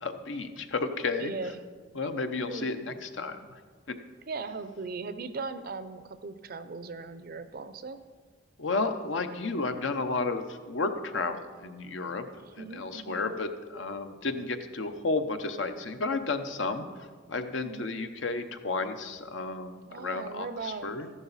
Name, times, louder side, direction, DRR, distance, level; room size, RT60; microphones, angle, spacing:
voice 1, 0.0-1.3 1.9-3.4 3.9-4.0 8.6-12.2 12.6-16.9 17.3-21.1, left 3 dB, 70° left, 8 dB, 0.8 m, -32 dB
voice 2, 1.2-1.5 2.5-2.7 4.3-8.0 12.6-13.3 17.6-17.9 19.9-20.9, right 4 dB, 50° right, 12 dB, 0.6 m, -38 dB
13.5 x 11.0 x 4.1 m, 1.6 s
head